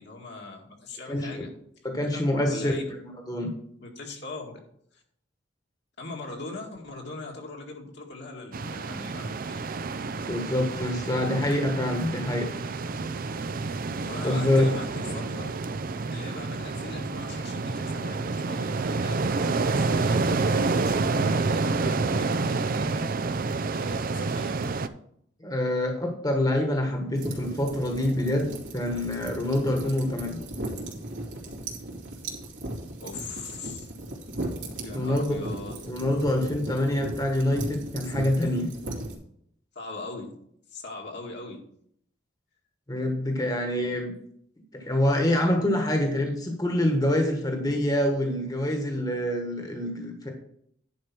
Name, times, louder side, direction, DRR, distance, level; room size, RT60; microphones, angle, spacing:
voice 1, 0.0-1.5 2.0-2.9 3.8-4.6 4.9-5.0 6.0-9.6 14.0-15.5 16.1-23.0 23.7-24.6 33.0-33.9 34.8-35.8 39.8-40.3 40.7-41.6, left 3 dB, 65° left, 0 dB, 2.1 m, -40 dB
voice 2, 1.1-1.4 1.8-2.7 3.0-3.5 10.3-12.5 14.2-14.7 25.4-30.4 34.9-35.4 35.8-38.7 42.9-44.1 44.7-50.3, left 1 dB, 20° left, 3 dB, 1.4 m, -26 dB
sound 1, 8.5-24.9, right 3 dB, 50° right, 0.5 m, -28 dB
sound 2, 27.1-39.1, right 1 dB, 85° right, 2.6 m, -37 dB
10.5 x 4.8 x 6.0 m, 0.68 s
head